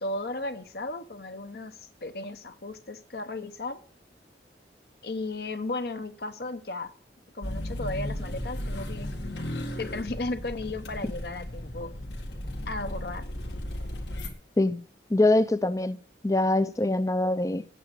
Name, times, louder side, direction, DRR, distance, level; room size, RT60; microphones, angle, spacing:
voice 1, 0.0-3.8 5.0-6.9 7.3-9.1 9.8-11.9 12.7-13.2, left 2 dB, 60° left, 0.8 m, -35 dB
sound 1, 7.4-14.3, left 1 dB, 85° left, 1.9 m, -35 dB
voice 2, 15.1-16.0 16.2-17.6, left 2 dB, 20° left, 0.4 m, -23 dB
8.6 x 8.0 x 6.5 m
head